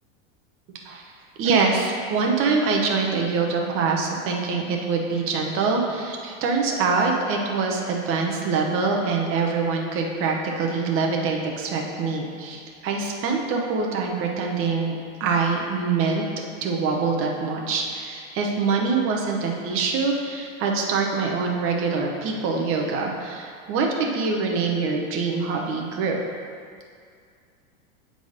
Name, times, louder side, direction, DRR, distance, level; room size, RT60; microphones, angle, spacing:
voice 1, 1.4-16.2 16.6-26.2, right 4 dB, 30° right, 1 dB, 0.9 m, -24 dB
7.9 x 3.9 x 5.0 m, 2.2 s
supercardioid pair, 150°, 40 cm